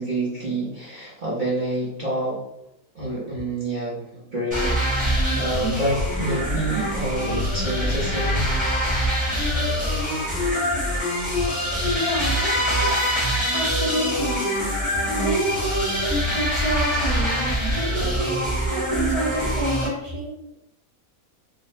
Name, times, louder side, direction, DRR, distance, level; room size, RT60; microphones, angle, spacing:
voice 1, 0.0-2.4 2.9-8.5, right 2 dB, 40° right, -8 dB, 0.8 m, -28 dB
sound 1, 4.5-19.9, equal, 5° right, 1.0 m, -24 dB
voice 2, 11.9-13.1 13.5-14.5 15.1-16.0 16.3-18.4 18.7-20.3, right 1 dB, 25° left, -8 dB, 0.8 m, -29 dB
3.2 x 2.0 x 4.1 m, 0.78 s
omnidirectional pair, 1.7 m